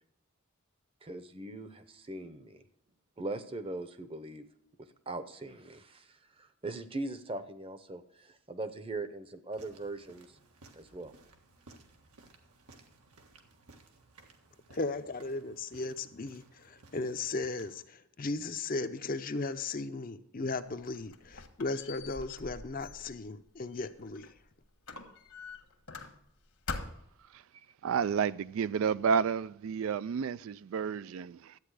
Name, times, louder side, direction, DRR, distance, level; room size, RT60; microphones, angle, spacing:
voice 1, 1.0-2.6 3.2-4.5 4.8-10.4 10.7-11.1, right 2 dB, 25° right, 0.7 m, -40 dB
sound 1, 9.5-17.9, right 3 dB, 90° right, 1.6 m, -59 dB
voice 2, 14.7-24.3, left 3 dB, 40° left, 0.6 m, -36 dB
Squeak, 20.6-24.4 24.9-26.4 26.7-27.2, left 4 dB, 70° left, 1.5 m, -44 dB
voice 3, 27.8-31.6, right 6 dB, 65° right, 0.3 m, -31 dB
12.0 x 8.7 x 4.8 m
head